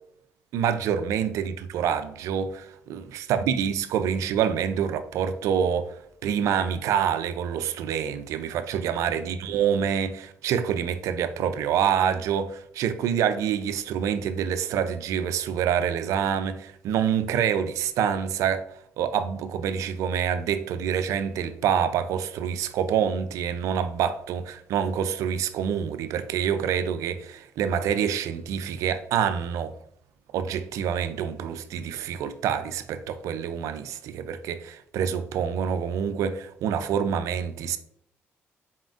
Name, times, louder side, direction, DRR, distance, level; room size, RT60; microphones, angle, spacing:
voice 1, 0.5-29.7 30.3-37.8, right 8 dB, 75° right, 0.4 m, -27 dB
4.2 x 3.7 x 2.4 m
supercardioid pair, 60°, 5 cm